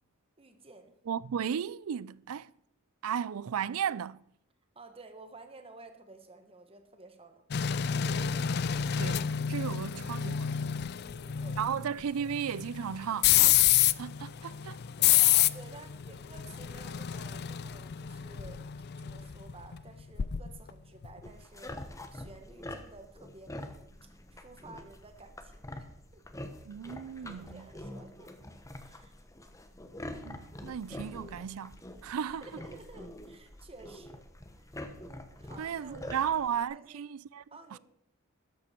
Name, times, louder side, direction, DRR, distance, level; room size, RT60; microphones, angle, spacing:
voice 1, 0.4-0.9 4.7-7.4 8.0-8.5 11.0-11.9 15.0-18.6 19.0-26.2 27.2-28.3 28.8-29.1 32.2-34.2 34.6-37.0 37.5-37.8, right 3 dB, 25° right, 1.5 m, -53 dB
voice 2, 1.1-2.5 3.0-4.2 8.9-10.8 11.6-13.7 14.0-14.8 26.6-27.6 30.1-32.5 35.6-37.4 37.7-37.8, right 8 dB, 85° right, 0.4 m, -35 dB
sound 1, 7.5-20.7 21.0-21.3, left 11 dB, 50° left, 0.4 m, -28 dB
sound 2, 21.2-36.6, left 1 dB, 15° left, 1.1 m, -45 dB
13.5 x 11.0 x 4.5 m
head